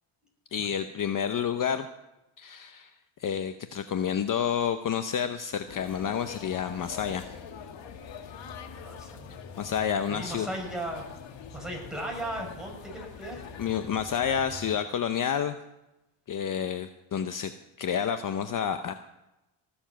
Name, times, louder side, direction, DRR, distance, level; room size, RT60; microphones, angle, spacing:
voice 1, 0.5-1.9 2.4-2.9 3.2-7.3 9.6-10.5 13.6-15.5 16.3-17.5 17.8-18.9, left 8 dB, 45° left, 9 dB, 0.8 m, -29 dB
sound 1, 5.7-14.8, left 7 dB, 65° left, 1.8 m, -44 dB
voice 2, 8.8-9.4 10.1-11.0 11.5-13.4, right 1 dB, ahead, -1 dB, 6.4 m, -37 dB
18.5 x 7.3 x 7.5 m, 0.94 s
cardioid pair, 95°, 47 cm